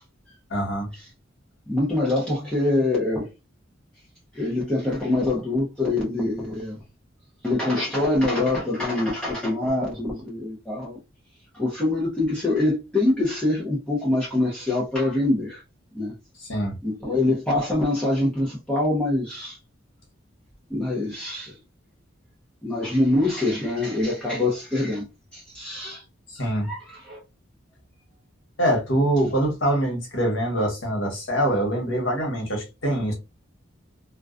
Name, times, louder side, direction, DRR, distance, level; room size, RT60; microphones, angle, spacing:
voice 1, 0.5-0.9 16.5-16.7 26.3-26.7 28.6-33.1, right 1 dB, 75° left, 1.2 m, -24 dB
voice 2, 1.7-3.3 4.3-6.8 7.4-11.0 11.5-15.6 15.9-16.1 16.8-19.6 20.7-21.5 22.6-25.1 25.3-26.0 26.6-27.2, left 2 dB, 5° left, 0.6 m, -24 dB
2.3 x 2.2 x 2.4 m
head